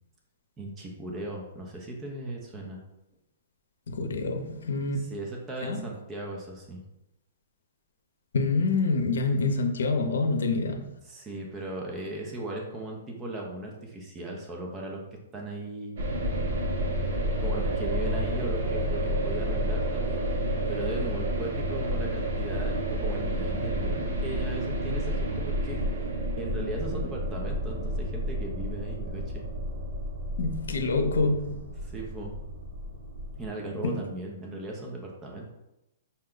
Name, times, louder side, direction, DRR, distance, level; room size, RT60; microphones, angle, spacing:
voice 1, 0.6-2.8 5.1-6.8 11.1-15.0 15.3-15.9 17.3-20.2 20.7-26.1 26.4-29.4 31.8-32.3 33.4-35.5, right 1 dB, 15° right, -1 dB, 0.7 m, -37 dB
voice 2, 3.9-5.1 5.6-5.8 8.3-10.9 30.4-31.6 33.8-34.0, left 3 dB, 85° left, 4 dB, 0.6 m, -26 dB
sound 1, 16.0-33.5, equal, 60° right, 0.9 m, -30 dB
5.6 x 2.2 x 3.7 m, 0.92 s
hypercardioid pair, 155°, 0 cm